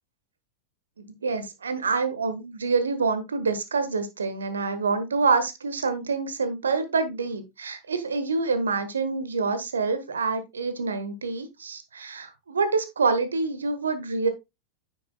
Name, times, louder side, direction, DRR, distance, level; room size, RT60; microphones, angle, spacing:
voice 1, 1.0-14.3, right 4 dB, 70° right, 10 dB, 1.3 m, -26 dB
9.8 x 6.8 x 2.2 m, 0.22 s
figure-of-eight pair, 90°, 0 cm